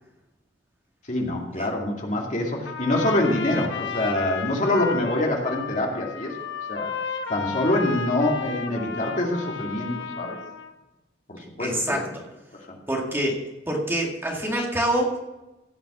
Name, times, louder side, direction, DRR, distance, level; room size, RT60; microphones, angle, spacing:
voice 1, 1.1-6.3 6.7-6.9 7.3-10.4 11.3-12.0 12.7-12.8, left 1 dB, 40° left, -1 dB, 2.4 m, -25 dB
Trumpet, 2.6-10.7, left 5 dB, 85° left, 1.3 m, -33 dB
voice 2, 11.6-12.2 12.9-13.4 13.7-15.2, right 1 dB, 15° right, -1 dB, 2.0 m, -26 dB
16.5 x 5.9 x 7.3 m, 1.0 s
head